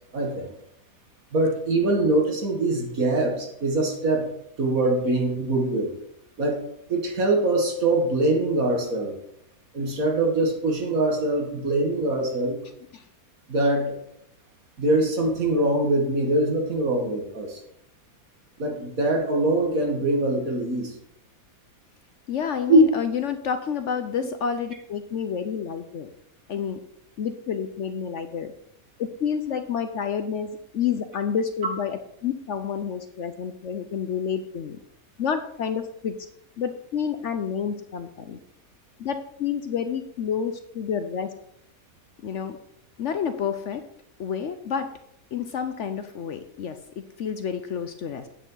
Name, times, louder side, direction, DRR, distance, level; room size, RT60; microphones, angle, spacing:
voice 1, 0.1-0.5 1.3-4.3 4.6-6.0 6.4-6.6 6.9-9.1 9.7-12.6 13.5-14.0 14.8-17.6 18.6-21.0 22.7-22.8, right 2 dB, 65° right, 1 dB, 2.3 m, -23 dB
voice 2, 22.3-26.1 26.5-26.8 27.2-28.5 29.0-34.8 35.2-36.2 36.6-38.4 39.0-41.3 42.2-42.6 43.0-43.8 44.2-44.9 45.3-48.3, left 7 dB, 60° left, 8 dB, 0.9 m, -29 dB
9.0 x 8.8 x 3.9 m, 0.73 s
omnidirectional pair, 1.6 m